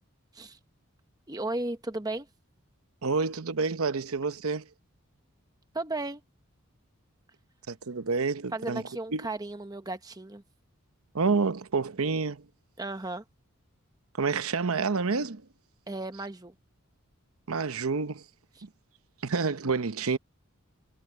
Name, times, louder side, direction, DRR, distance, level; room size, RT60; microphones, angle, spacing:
voice 1, 1.3-2.3 5.7-6.2 8.5-10.4 12.8-13.2 15.9-16.5 18.6-18.7, right 2 dB, 15° right, 0.9 m, -35 dB
voice 2, 3.0-4.7 7.7-8.8 9.1-9.3 11.1-12.4 14.2-15.4 17.5-18.2 18.6-18.7 19.2-20.2, right 4 dB, 80° right, 0.9 m, -28 dB
head